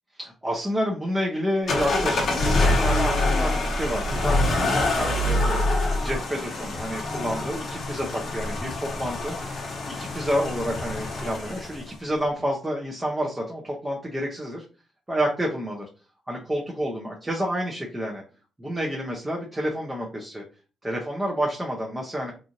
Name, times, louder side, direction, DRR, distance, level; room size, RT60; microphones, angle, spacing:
voice 1, 0.2-5.6 6.0-9.6 9.9-14.6 15.1-15.8 16.3-18.2 18.6-20.4 20.8-22.3, equal, 15° right, -2 dB, 0.7 m, -29 dB
sound 1, 1.7-11.9, left 2 dB, 55° left, 0.9 m, -25 dB
3.0 x 2.5 x 2.6 m, 0.34 s
cardioid pair, 100°, 0 cm